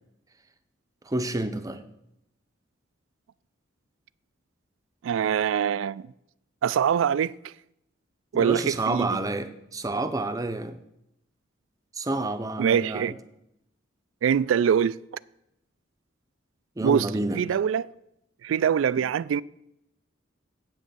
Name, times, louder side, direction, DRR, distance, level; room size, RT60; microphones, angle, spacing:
voice 1, 1.1-1.8 8.3-10.8 12.0-13.1 16.8-17.4, right 2 dB, 20° right, 0.6 m, -29 dB
voice 2, 5.0-6.1 6.6-7.5 8.3-9.2 12.6-13.1 14.2-15.0 16.8-17.1 17.4-17.9 18.4-19.4, right 8 dB, 80° right, 0.3 m, -24 dB
8.4 x 6.4 x 6.8 m
head